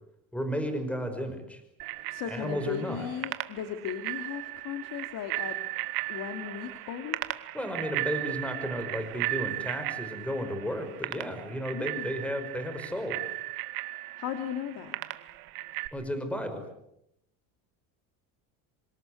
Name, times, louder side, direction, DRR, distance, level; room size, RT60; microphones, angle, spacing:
voice 1, 0.3-1.6 2.3-3.1 7.5-13.2 15.9-16.7, equal, 5° left, 8 dB, 5.3 m, -33 dB
Bicycle bell, 1.8-15.9, right 19 dB, 70° right, 2.0 m, -36 dB
voice 2, 2.1-5.6 6.1-7.2 11.7-12.1 14.2-15.0, left 9 dB, 55° left, 6 dB, 3.0 m, -36 dB
27.5 x 25.5 x 8.0 m, 0.79 s
cardioid pair, 130°, 39 cm